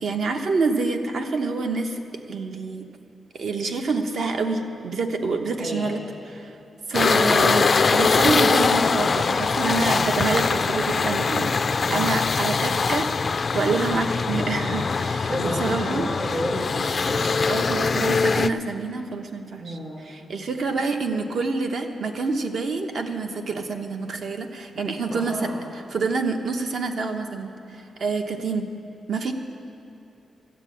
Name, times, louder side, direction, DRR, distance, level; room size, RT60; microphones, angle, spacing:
voice 1, 0.0-2.0 2.3-2.9 3.3-6.0 6.3-6.5 6.9-13.1 13.5-16.1 17.5-19.8 20.1-25.5 25.9-28.6 29.1-29.3, right 4 dB, 65° right, 5 dB, 1.0 m, -27 dB
voice 2, 5.6-6.0 11.9-12.1 15.3-17.4 19.6-20.0 25.1-25.6, equal, 35° right, -5 dB, 2.4 m, -31 dB
sound 1, 6.9-18.5, left 4 dB, 35° left, 0.3 m, -22 dB
13.0 x 8.4 x 8.4 m, 2.9 s
wide cardioid pair, 150°, 0 cm